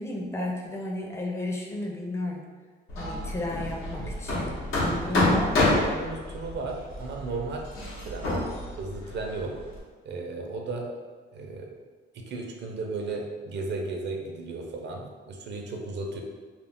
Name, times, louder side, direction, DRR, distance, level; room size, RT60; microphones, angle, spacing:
voice 1, 0.0-2.5 3.0-4.5 4.8-5.5, left 2 dB, 15° left, -1 dB, 0.4 m, -32 dB
Hammer, 2.9-9.8, left 1 dB, 90° left, 0.8 m, -29 dB
voice 2, 5.0-7.7 8.0-8.5 8.7-9.6 10.0-10.9 11.3-11.8 12.1-16.2, right 3 dB, 60° right, 2 dB, 0.5 m, -35 dB
2.4 x 2.0 x 3.4 m, 1.5 s
cardioid pair, 90°, 20 cm